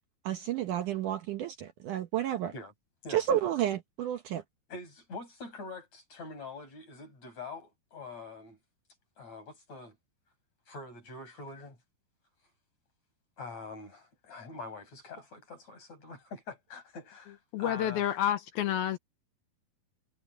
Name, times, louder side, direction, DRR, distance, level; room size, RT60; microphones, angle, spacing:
voice 1, 0.3-2.5 3.1-4.4, right 10 dB, 70° right, 2.1 m, -31 dB
voice 2, 4.7-8.6 9.2-10.0 10.7-11.8 13.4-18.0, left 3 dB, 45° left, 7.8 m, -44 dB
voice 3, 17.5-19.0, left 11 dB, 80° left, 2.8 m, -29 dB
omnidirectional pair, 4.4 m